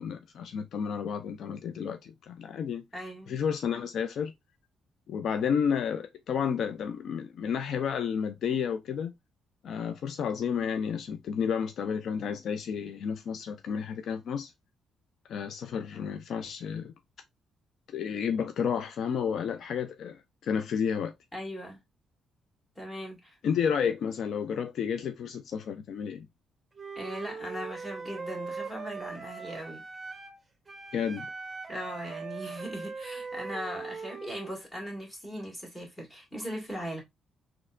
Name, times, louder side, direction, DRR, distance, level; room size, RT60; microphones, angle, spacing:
voice 1, 0.0-2.8 3.3-4.3 5.1-9.1 9.6-14.5 15.3-16.9 17.9-21.1 23.4-26.3 30.9-31.3, left 7 dB, 65° left, 0.4 m, -31 dB
voice 2, 2.9-3.4 21.3-21.8 22.8-23.4 27.0-29.8 31.7-37.0, equal, 15° left, 2.0 m, -39 dB
Wind instrument woodwind instrument, 26.7-30.4 30.7-34.6, right 4 dB, 20° right, 0.8 m, -40 dB
4.1 x 2.9 x 2.4 m
cardioid pair, 90°, 0 cm